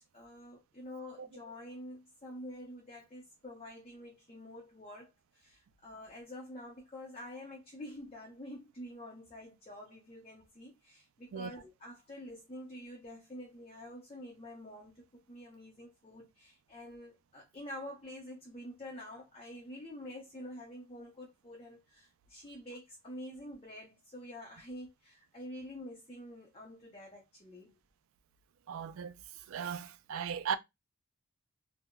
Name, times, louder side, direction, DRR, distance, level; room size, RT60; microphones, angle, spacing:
voice 1, 0.1-27.7, left 1 dB, 25° left, 0.6 m, -48 dB
voice 2, 28.7-29.2 29.5-30.6, right 7 dB, 65° right, 0.3 m, -37 dB
3.7 x 2.1 x 2.2 m
head